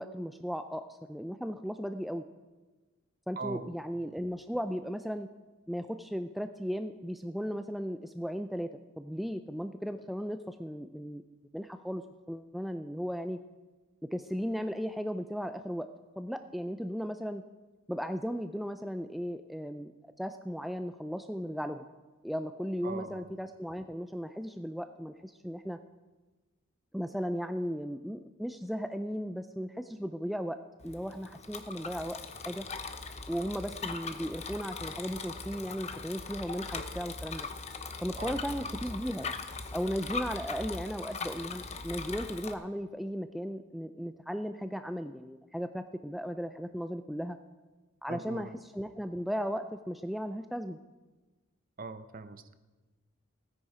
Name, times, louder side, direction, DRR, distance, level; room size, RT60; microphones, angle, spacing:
voice 1, 0.0-2.2 3.3-5.3 5.7-11.2 11.5-13.4 14.0-15.9 16.2-17.4 17.9-19.9 20.2-21.9 22.2-25.8 26.9-32.2 32.5-32.7 33.3-37.5 38.0-39.4 39.7-47.4 48.0-50.8, equal, ahead, 8 dB, 0.3 m, -36 dB
voice 2, 3.4-3.7 22.8-23.3 38.2-38.7 48.1-48.5 51.8-52.6, right 3 dB, 40° right, 11 dB, 0.7 m, -41 dB
Bicycle, 30.8-42.5, left 4 dB, 30° left, 0.8 m, -40 dB
16.5 x 9.7 x 4.9 m, 1.2 s
head